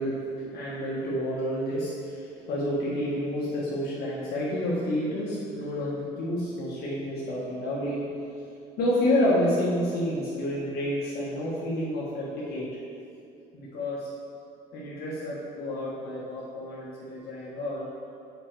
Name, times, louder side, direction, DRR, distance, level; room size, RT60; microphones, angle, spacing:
voice 1, 0.0-8.1 8.8-12.7 13.5-14.1 14.7-17.9, left 1 dB, 70° left, -7 dB, 1.3 m, -29 dB
7.3 x 4.4 x 4.6 m, 2.5 s
cardioid pair, 110°, 17 cm